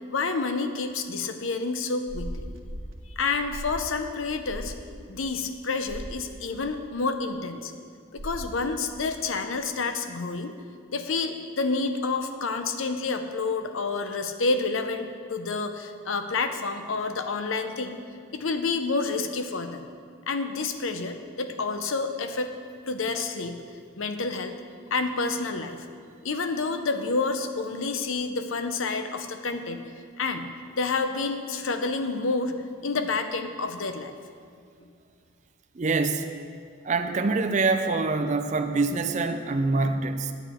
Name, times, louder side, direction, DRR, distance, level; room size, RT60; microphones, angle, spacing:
voice 1, 0.1-2.5 3.2-4.7 5.1-7.7 8.1-10.5 10.9-18.0 18.3-19.9 20.3-22.5 22.9-23.6 24.0-24.5 24.9-25.9 26.2-29.8 30.2-30.5 30.7-32.6 32.8-34.3 34.8-34.9, left 4 dB, 70° left, 7 dB, 0.7 m, -29 dB
sound 1, 2.1-2.9 3.5-3.9 4.5-4.8 5.9-6.2 8.2-8.6, equal, 80° right, 0.9 m, -37 dB
voice 2, 35.7-36.3 36.8-40.3, right 3 dB, 35° right, 6 dB, 0.5 m, -25 dB
9.0 x 9.0 x 4.4 m, 2.2 s
head